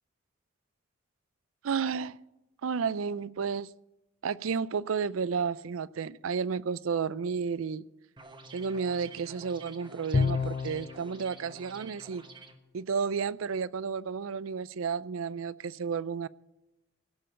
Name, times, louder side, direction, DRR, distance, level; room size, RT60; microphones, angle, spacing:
voice 1, 1.6-2.2 2.6-3.7 4.2-7.8 8.5-12.2 12.7-16.3, right 6 dB, 90° right, 0.4 m, -32 dB
sound 1, 8.2-12.6, right 3 dB, 25° right, 1.1 m, -50 dB
Bowed string instrument, 10.1-11.0, left 4 dB, 35° left, 0.4 m, -28 dB
16.5 x 6.9 x 8.7 m
head